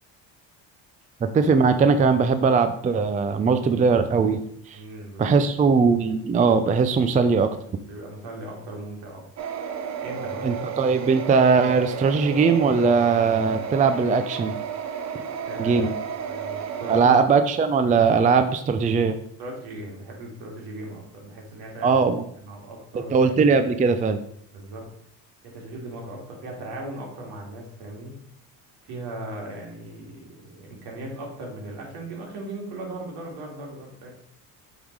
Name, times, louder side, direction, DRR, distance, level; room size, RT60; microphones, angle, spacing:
voice 1, 1.2-4.4 4.7-4.8 5.2-7.5 10.4-14.5 15.6-15.9 16.9-19.2 21.8-22.2 23.1-24.2, right 5 dB, 20° right, 9 dB, 0.4 m, -20 dB
voice 2, 4.7-5.4 7.8-9.2 10.0-10.5 15.5-17.1 19.4-21.9 22.4-23.3 24.5-24.9 25.4-28.1 28.8-34.1, right 1 dB, 70° right, -1 dB, 2.5 m, -38 dB
sound 1, 9.4-17.0, right 7 dB, 45° right, 0.8 m, -32 dB
7.3 x 3.7 x 4.6 m, 0.68 s
cardioid pair, 100°, 39 cm